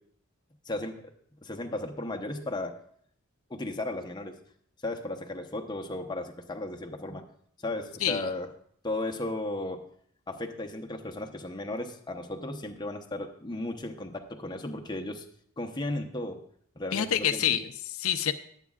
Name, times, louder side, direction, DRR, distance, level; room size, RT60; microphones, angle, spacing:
voice 1, 0.7-1.0 1.4-2.8 3.5-4.4 4.8-7.3 7.6-8.5 8.8-9.8 10.3-15.2 15.6-16.4 16.8-17.6, left 2 dB, 20° left, 3 dB, 0.9 m, -35 dB
voice 2, 16.9-18.3, left 9 dB, 85° left, 9 dB, 0.6 m, -27 dB
21.5 x 8.3 x 2.4 m, 0.63 s
head